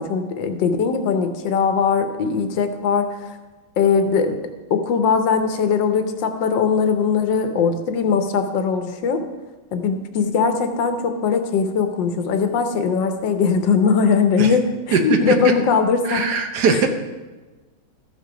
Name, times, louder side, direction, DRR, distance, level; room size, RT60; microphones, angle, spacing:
voice 1, 0.0-3.1 3.8-4.3 4.7-9.2 9.7-16.2 16.7-16.9, left 5 dB, 90° left, 7 dB, 1.6 m, -20 dB
voice 2, 16.0-16.9, right 6 dB, 65° right, 5 dB, 1.5 m, -20 dB
13.5 x 5.7 x 5.0 m, 1.2 s
omnidirectional pair, 1.9 m